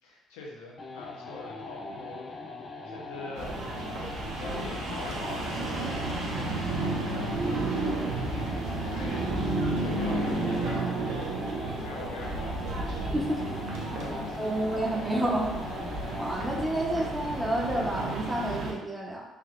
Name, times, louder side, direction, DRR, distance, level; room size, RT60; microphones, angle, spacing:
voice 1, 0.0-3.6 3.9-11.4 11.8-12.9 13.9-14.6 16.8-17.1, left 3 dB, 75° left, -4 dB, 0.7 m, -45 dB
sound 1, 0.8-17.8, left 2 dB, 45° left, 0.4 m, -41 dB
sound 2, 3.4-18.7, right 2 dB, 65° right, 0.6 m, -32 dB
voice 2, 13.1-13.5 14.4-15.6 16.2-19.2, right 1 dB, 10° right, -2 dB, 0.8 m, -29 dB
3.4 x 2.7 x 2.4 m, 0.97 s
hypercardioid pair, 50°, 0 cm